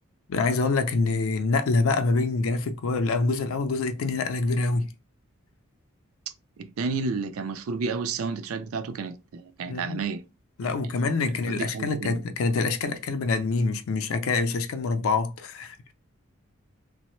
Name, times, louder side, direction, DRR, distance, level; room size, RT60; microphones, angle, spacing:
voice 1, 0.3-4.9 9.7-10.0 10.6-15.9, left 3 dB, 80° left, 0.4 m, -26 dB
voice 2, 6.6-10.2 10.6-10.7 11.2-12.2, right 4 dB, 90° right, 0.4 m, -31 dB
3.1 x 2.0 x 2.9 m
head